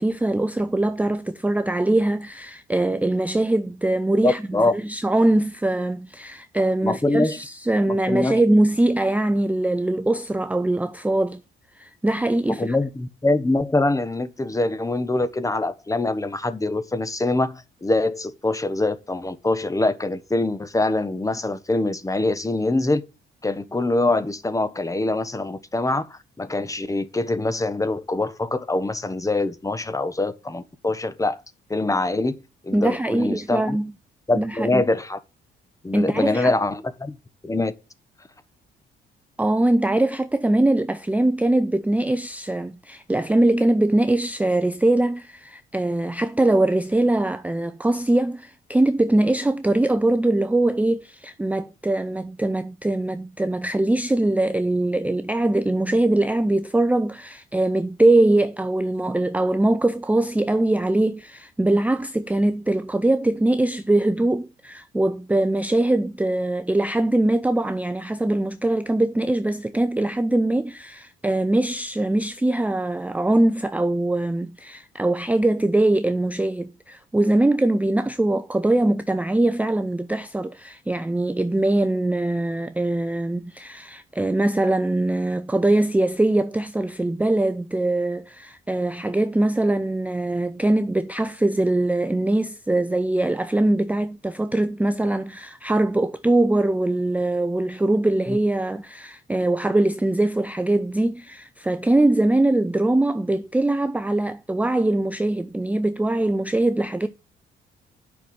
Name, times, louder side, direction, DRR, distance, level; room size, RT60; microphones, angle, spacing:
voice 1, 0.0-4.4 4.7-11.4 11.8-12.8 32.7-33.9 34.4-34.8 35.9-36.5 39.4-107.1, right 2 dB, 5° right, 0.5 m, -22 dB
voice 2, 4.2-4.7 6.8-7.4 7.9-8.4 12.5-23.0 23.4-31.4 31.7-33.8 34.3-35.2 35.8-37.1 37.4-37.7 98.3-98.4, left 2 dB, 15° left, 1.2 m, -24 dB
9.2 x 5.9 x 7.0 m
cardioid pair, 90°, 20 cm